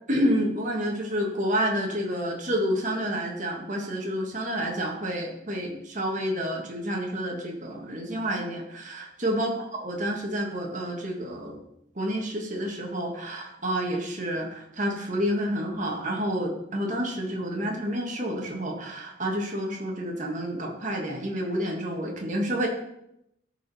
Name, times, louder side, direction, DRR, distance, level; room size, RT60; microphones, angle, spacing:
voice 1, 0.1-11.6 11.9-22.7, equal, 40° right, 0 dB, 1.7 m, -29 dB
14.0 x 5.0 x 4.2 m, 0.80 s
head